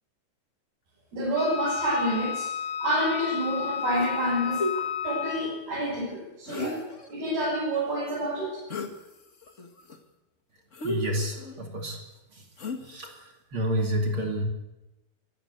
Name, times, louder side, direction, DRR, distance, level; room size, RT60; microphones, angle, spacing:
voice 1, 1.1-2.5 2.8-6.8 7.1-8.5, equal, 85° right, -7 dB, 9.3 m, -28 dB
Wind instrument woodwind instrument, 1.4-5.6, left 8 dB, 60° left, 4.8 m, -32 dB
sound 1, 4.0-4.2 4.6-4.8 6.5-7.1 8.7-9.0 9.4-10.0 10.7-11.6 12.6-13.1, left 2 dB, 40° left, 1.0 m, -33 dB
voice 2, 10.8-12.0 12.9-13.1 13.5-14.4, right 1 dB, 35° right, 1 dB, 3.0 m, -29 dB
22.5 x 14.5 x 8.1 m, 1.0 s
omnidirectional pair, 4.3 m